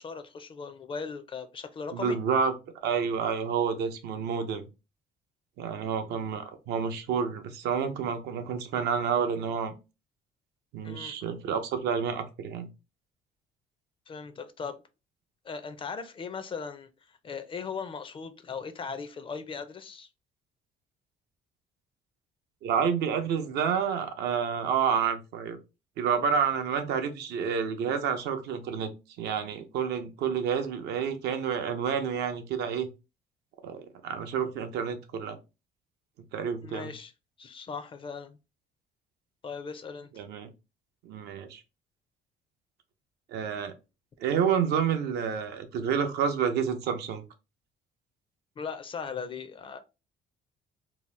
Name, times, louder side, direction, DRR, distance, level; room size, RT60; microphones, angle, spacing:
voice 1, 0.0-2.2 10.8-11.1 14.1-14.8 15.4-20.1 36.6-37.1 37.4-38.4 39.4-40.1 48.6-49.8, left 5 dB, 30° left, 0.4 m, -38 dB
voice 2, 1.9-2.5 2.8-4.7 5.6-9.7 10.7-12.7 22.6-25.6 26.0-28.9 29.2-32.9 33.6-35.4 36.3-36.9 40.2-40.5 41.0-41.6 43.3-43.7 44.2-47.2, right 7 dB, 75° right, 0.6 m, -29 dB
2.8 x 2.0 x 3.1 m
cardioid pair, 110°, 17 cm